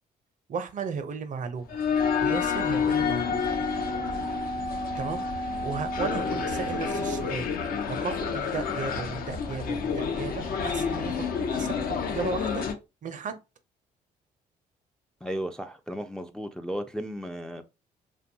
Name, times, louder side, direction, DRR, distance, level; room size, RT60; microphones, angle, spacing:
voice 1, 0.5-1.8 2.2-3.5 5.0-12.7 13.0-13.4, right 5 dB, 50° right, 0.5 m, -35 dB
sound 1, 1.7-12.7, left 6 dB, 60° left, 0.5 m, -29 dB
Wind instrument woodwind instrument, 3.2-7.5, equal, 90° left, 1.2 m, -34 dB
voice 2, 15.2-17.6, equal, 5° left, 0.3 m, -34 dB
2.5 x 2.2 x 2.6 m
supercardioid pair, 60°, 17 cm